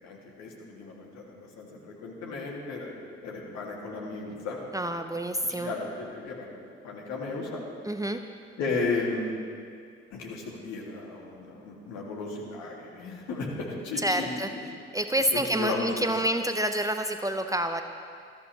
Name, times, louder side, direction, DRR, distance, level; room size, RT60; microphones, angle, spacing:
voice 1, 0.0-4.6 5.1-6.6 6.8-7.6 8.6-9.4 10.1-14.4 15.3-15.9, left 3 dB, 60° left, -2 dB, 2.6 m, -35 dB
voice 2, 4.7-5.7 7.9-8.2 14.0-14.5 14.9-17.8, right 1 dB, 10° right, 7 dB, 0.7 m, -28 dB
19.5 x 13.5 x 3.2 m, 2.3 s
figure-of-eight pair, 50°, 31 cm